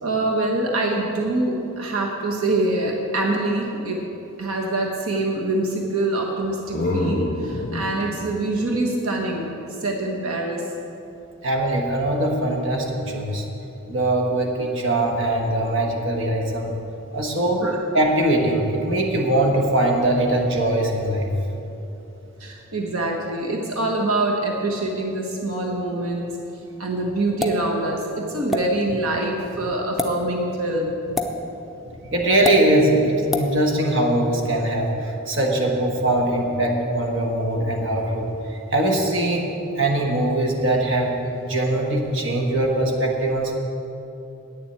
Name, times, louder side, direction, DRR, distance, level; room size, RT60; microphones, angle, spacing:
voice 1, 0.0-4.0 4.4-9.5 9.8-10.6 17.6-17.8 22.4-26.4 26.8-31.0 32.0-32.1, right 2 dB, 85° right, 0 dB, 1.2 m, -25 dB
sound 1, 6.4-10.1, left 1 dB, 40° left, 0.6 m, -29 dB
voice 2, 11.4-13.4 13.9-16.7 17.1-17.6 17.9-21.3 32.1-38.3 38.7-39.5 39.7-41.2 41.5-43.5, right 1 dB, 60° right, 0 dB, 1.5 m, -21 dB
sound 2, 27.4-27.6 28.5-28.6 29.9-30.1 31.1-31.3 32.4-32.6 33.3-33.5, left 2 dB, ahead, 0.6 m, -24 dB
9.3 x 7.3 x 8.8 m, 2.9 s
head